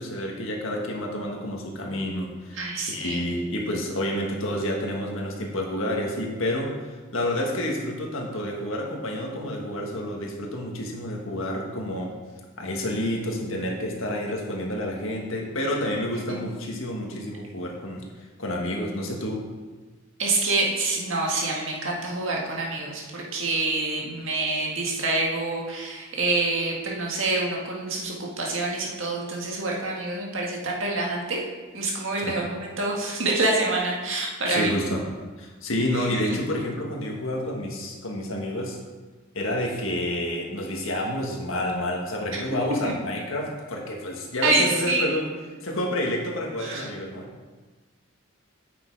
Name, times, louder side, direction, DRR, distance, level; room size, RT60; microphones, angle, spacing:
voice 1, 0.0-6.7 7.1-12.1 12.6-18.1 18.4-19.4 32.2-32.4 34.5-35.0 35.4-38.8 39.3-45.2 45.6-47.3, left 1 dB, 75° left, 0 dB, 1.6 m, -29 dB
voice 2, 2.6-3.2 16.0-16.5 20.2-31.4 31.7-34.7 35.9-36.4 42.8-42.9 44.4-45.1 46.6-46.9, right 2 dB, 65° right, -2 dB, 1.8 m, -27 dB
8.4 x 6.1 x 4.7 m, 1.3 s
head